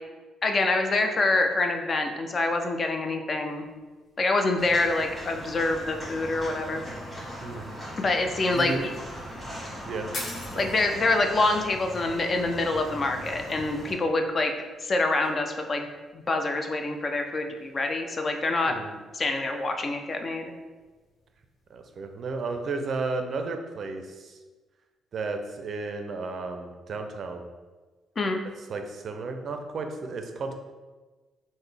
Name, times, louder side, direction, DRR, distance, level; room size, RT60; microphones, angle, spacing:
voice 1, 0.4-3.6 4.2-6.8 8.0-8.7 10.6-14.5 14.8-15.9 16.3-18.7 19.1-20.5 28.2-28.5, left 2 dB, 40° left, 5 dB, 0.3 m, -26 dB
sound 1, 3.4-22.8, left 1 dB, 70° left, 1.3 m, -50 dB
Walk footsteps, 4.6-13.9, equal, 10° left, 1.4 m, -40 dB
voice 2, 7.4-7.7 8.5-8.8 9.9-10.1 10.5-10.7 18.7-18.9 21.7-24.4 25.1-27.4 28.6-30.5, right 3 dB, 55° right, 5 dB, 0.4 m, -33 dB
3.6 x 2.1 x 3.3 m, 1.3 s
cardioid pair, 90°, 0 cm